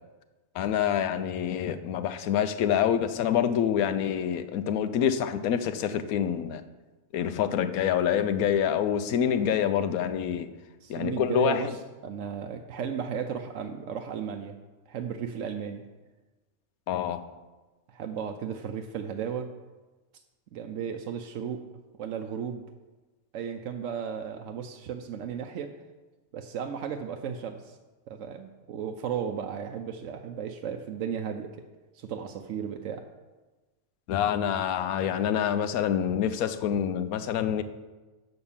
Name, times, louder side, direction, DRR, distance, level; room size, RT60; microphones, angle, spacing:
voice 1, 0.5-6.6 7.1-10.5 10.9-11.7 16.9-17.2 34.1-37.6, left 9 dB, 80° left, 10 dB, 1.1 m, -26 dB
voice 2, 10.8-14.6 14.9-15.8 17.9-19.5 20.5-21.6 22.0-22.6 23.3-25.8 26.3-27.8 28.1-31.5 31.9-33.1, right 7 dB, 65° right, 4 dB, 0.9 m, -34 dB
7.8 x 6.7 x 7.1 m, 1.2 s
omnidirectional pair, 1.5 m